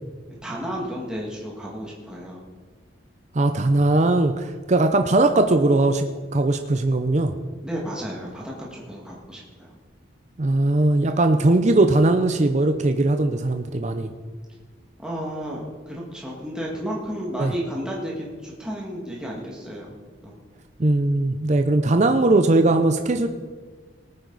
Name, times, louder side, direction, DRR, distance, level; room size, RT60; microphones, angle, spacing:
voice 1, 0.4-2.4 7.6-9.7 15.0-19.9 20.2-20.3, equal, 5° right, -4 dB, 1.9 m, -32 dB
voice 2, 3.3-7.3 10.4-14.1 17.4-17.5 20.8-23.3, right 2 dB, 35° right, 6 dB, 0.6 m, -19 dB
19.0 x 9.4 x 4.0 m, 1.5 s
head